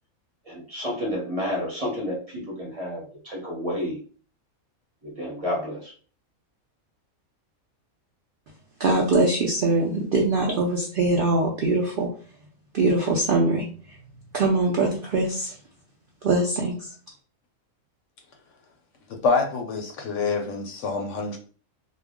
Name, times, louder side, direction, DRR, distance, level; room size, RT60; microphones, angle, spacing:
voice 1, 0.4-4.0 5.0-5.9, left 1 dB, 30° right, -3 dB, 0.8 m, -30 dB
voice 2, 8.8-12.1 12.7-13.7 14.3-15.5 16.2-16.8, right 2 dB, 70° right, 0 dB, 0.5 m, -22 dB
voice 3, 19.1-21.4, left 4 dB, 65° left, 3 dB, 0.8 m, -26 dB
2.4 x 2.1 x 3.4 m, 0.41 s
omnidirectional pair, 1.5 m